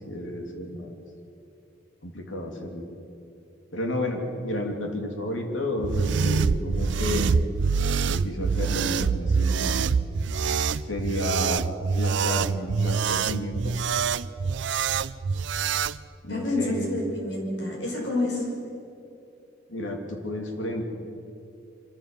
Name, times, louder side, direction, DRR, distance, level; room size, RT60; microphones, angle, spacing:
voice 1, 0.1-0.9 2.0-2.9 3.7-7.3 8.0-9.7 10.9-11.6 11.9-13.6 16.2-16.9 19.7-20.9, left 1 dB, 90° left, 3 dB, 3.0 m, -31 dB
sound 1, 5.8-16.0, right 5 dB, 70° right, 0.5 m, -25 dB
voice 2, 16.3-18.5, left 2 dB, 65° left, -1 dB, 5.5 m, -28 dB
25.0 x 14.5 x 7.3 m, 2.7 s
head